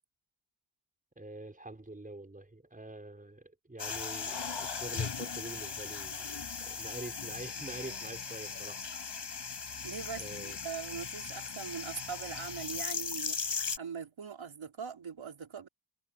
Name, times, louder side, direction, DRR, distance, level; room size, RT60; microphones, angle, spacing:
voice 1, 1.2-8.8 10.2-10.7, right 2 dB, 15° right, 5.6 m, -46 dB
sound 1, 3.8-13.8, left 6 dB, 60° left, 5.6 m, -38 dB
voice 2, 9.8-15.7, right 6 dB, 65° right, 3.9 m, -41 dB
wide cardioid pair, 140°, 50 cm